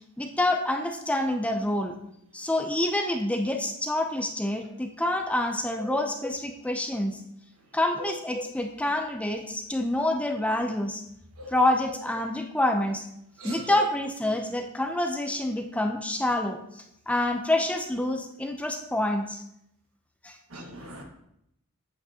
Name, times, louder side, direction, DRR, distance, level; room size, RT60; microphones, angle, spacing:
voice 1, 0.2-2.0 2.3-7.2 7.7-11.0 11.5-13.0 13.4-16.6 17.1-19.4 20.2-20.4, left 1 dB, 5° left, 3 dB, 0.6 m, -27 dB
voice 2, 20.5-21.0, right 1 dB, 75° right, 2 dB, 1.6 m, -39 dB
8.4 x 7.9 x 2.9 m, 0.78 s
head